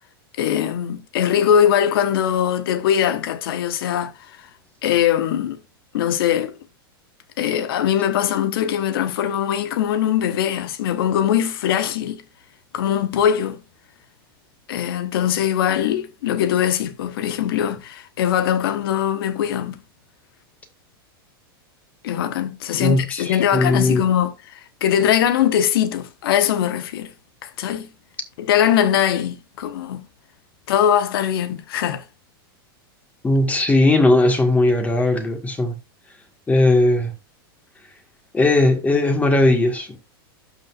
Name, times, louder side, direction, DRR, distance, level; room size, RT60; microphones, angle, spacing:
voice 1, 0.4-4.1 4.8-5.6 5.9-6.6 7.4-12.2 12.7-13.6 14.7-19.8 22.0-24.3 24.8-27.1 27.4-27.9 28.4-30.1 30.7-32.0, left 9 dB, 70° left, 1.1 m, -21 dB
voice 2, 22.8-24.1 33.2-35.8 36.5-37.1 38.3-40.0, left 2 dB, 10° left, 1.7 m, -18 dB
12.0 x 5.2 x 2.5 m
supercardioid pair, 140°, 13 cm